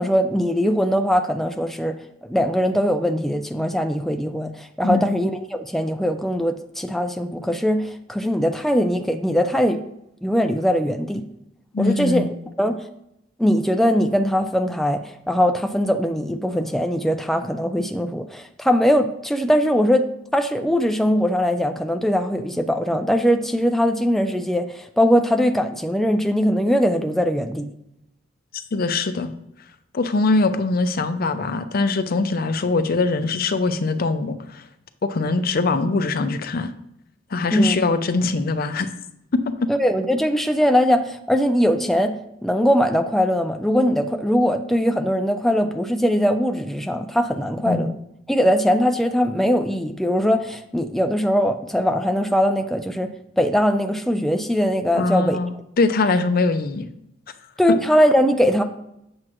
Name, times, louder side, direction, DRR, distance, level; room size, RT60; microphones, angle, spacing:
voice 1, 0.0-2.0 2.3-9.8 10.2-11.3 11.8-12.3 12.6-12.8 13.4-20.1 20.3-27.7 37.5-37.8 39.7-47.9 48.3-55.4 57.6-58.6, equal, ahead, 6 dB, 0.4 m, -21 dB
voice 2, 11.7-12.3 28.7-29.3 29.9-34.6 35.0-36.7 37.3-38.9 39.3-39.7 47.7-47.9 54.9-56.9 57.7-57.8, left 3 dB, 50° left, 10 dB, 0.5 m, -22 dB
7.9 x 7.4 x 3.0 m, 0.80 s
head